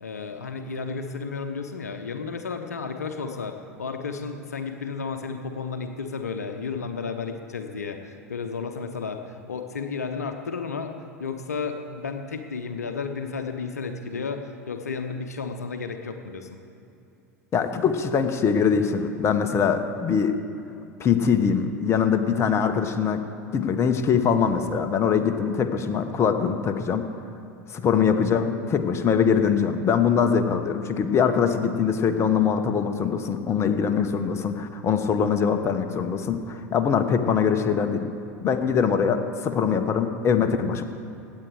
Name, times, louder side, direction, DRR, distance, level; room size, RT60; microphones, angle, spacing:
voice 1, 0.0-10.9 11.2-16.5, left 5 dB, 80° left, 6 dB, 0.8 m, -32 dB
voice 2, 17.5-20.3 21.0-23.2 23.5-27.1 27.7-38.1 38.4-40.8, left 6 dB, 30° left, 8 dB, 1.0 m, -23 dB
16.0 x 8.4 x 4.9 m, 2.8 s
figure-of-eight pair, 80°, 8 cm